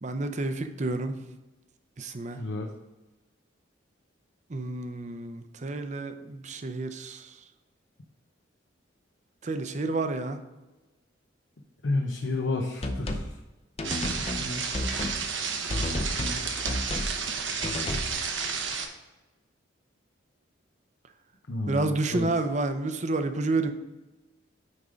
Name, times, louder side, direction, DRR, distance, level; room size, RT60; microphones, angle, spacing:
voice 1, 0.0-1.2 2.0-2.4 4.5-7.4 9.4-10.4 21.7-23.7, right 2 dB, 35° right, 0.6 m, -30 dB
voice 2, 2.4-2.7 11.8-13.3 14.2-14.6 21.5-22.3, left 2 dB, 70° left, 0.8 m, -31 dB
sound 1, 12.8-13.3 13.8-14.5 14.7-15.2 15.7-16.4 16.7-17.1 17.6-18.1, left 1 dB, 30° left, 0.6 m, -31 dB
sound 2, 13.8-18.9, right 5 dB, 75° right, 1.0 m, -31 dB
9.6 x 3.7 x 5.0 m
head